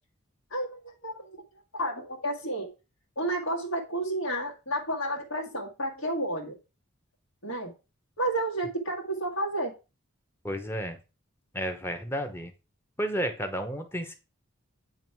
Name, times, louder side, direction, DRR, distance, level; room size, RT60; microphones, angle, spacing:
voice 1, 0.5-1.4 1.7-2.7 3.1-6.6 7.4-7.7 8.2-9.7, right 1 dB, 70° left, 0 dB, 1.7 m, -31 dB
voice 2, 10.4-11.0 11.5-12.5 13.0-14.1, equal, 10° left, 5 dB, 0.9 m, -32 dB
9.0 x 3.1 x 4.6 m, 0.30 s
head